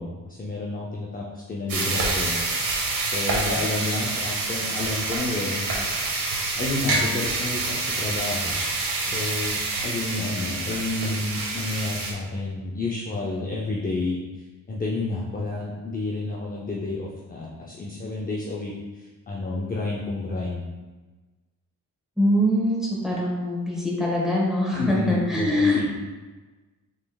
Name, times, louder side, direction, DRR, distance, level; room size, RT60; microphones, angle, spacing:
voice 1, 0.0-2.4 3.1-5.7 6.5-8.6 9.1-20.6 24.8-25.9, left 2 dB, 25° left, -3 dB, 0.6 m, -30 dB
sound 1, 1.7-12.1, right 3 dB, 75° right, 1.0 m, -27 dB
voice 2, 22.2-25.9, left 1 dB, ahead, -5 dB, 1.5 m, -23 dB
6.4 x 3.4 x 2.3 m, 1.3 s
cardioid pair, 100°, 34 cm